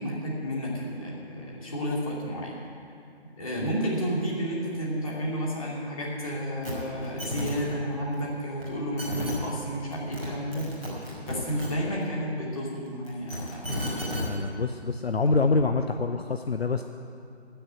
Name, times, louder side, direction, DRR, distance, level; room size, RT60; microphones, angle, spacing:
voice 1, 0.0-2.5 3.4-10.7 11.2-13.7 13.9-14.2, equal, 30° left, -5 dB, 2.9 m, -31 dB
sound 1, 6.6-6.7 7.0-7.5 8.6-8.7 9.0-9.3 9.9-10.3 10.5-11.7 13.0-14.2 15.2-15.3, equal, 5° left, 0.9 m, -32 dB
voice 2, 14.2-16.8, left 3 dB, 65° left, 7 dB, 0.7 m, -26 dB
16.0 x 6.8 x 9.3 m, 2.4 s
figure-of-eight pair, 155°, 33 cm